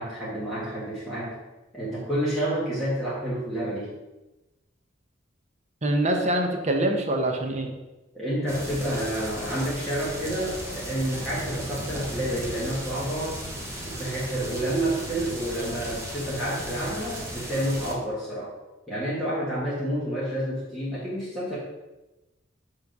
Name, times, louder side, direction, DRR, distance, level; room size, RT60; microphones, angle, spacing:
voice 1, 0.0-1.4 1.7-3.9 8.1-13.4 13.8-18.5 18.9-21.6, right 1 dB, ahead, -10 dB, 1.6 m, -29 dB
voice 2, 5.8-7.7, right 1 dB, 35° right, 3 dB, 0.8 m, -24 dB
sound 1, 8.5-17.9, equal, 15° right, 1.0 m, -36 dB
7.1 x 3.1 x 5.3 m, 1.1 s
head